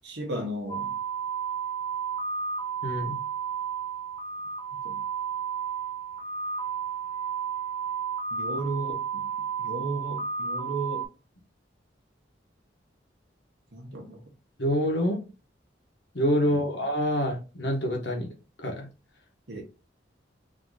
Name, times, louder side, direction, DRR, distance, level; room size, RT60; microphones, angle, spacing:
voice 1, 0.0-0.9 4.8-5.0 8.3-9.3 9.6-11.1 13.7-14.2 16.4-16.7 19.5-19.6, right 2 dB, 70° right, 1.4 m, -34 dB
sound 1, 0.7-11.1, right 6 dB, 25° left, 1.2 m, -32 dB
voice 2, 2.8-3.2 14.6-15.2 16.1-18.3 18.6-18.9, equal, 65° left, 1.3 m, -26 dB
3.8 x 2.9 x 3.9 m
head